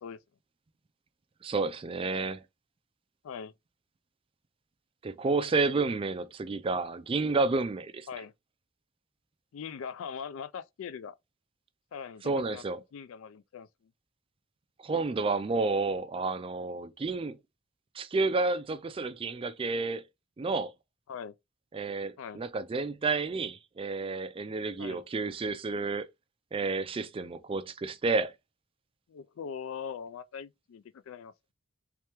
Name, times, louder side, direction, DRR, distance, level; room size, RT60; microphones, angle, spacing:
voice 1, 1.4-2.4 5.0-8.1 12.2-12.8 14.8-17.4 17.9-20.0 20.4-20.7 21.7-26.1 26.5-28.3, right 3 dB, 25° right, 0.3 m, -30 dB
voice 2, 9.5-11.1 11.9-12.6 12.9-13.7 21.1-21.3 22.2-22.4 24.8-25.0 29.1-31.3, left 7 dB, 65° left, 0.3 m, -41 dB
3.3 x 3.0 x 3.2 m
head